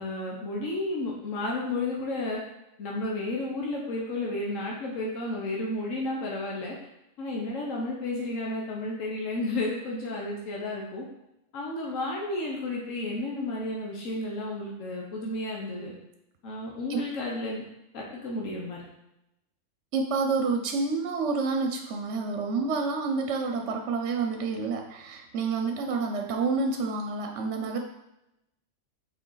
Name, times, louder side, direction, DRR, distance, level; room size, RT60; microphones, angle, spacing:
voice 1, 0.0-2.4 2.8-6.8 7.2-11.0 11.5-15.9 16.4-17.6 17.9-18.8, left 2 dB, 85° left, -2 dB, 1.4 m, -32 dB
voice 2, 19.9-27.8, right 4 dB, 70° right, 3 dB, 0.9 m, -28 dB
6.3 x 4.1 x 3.9 m, 0.87 s
omnidirectional pair, 1.3 m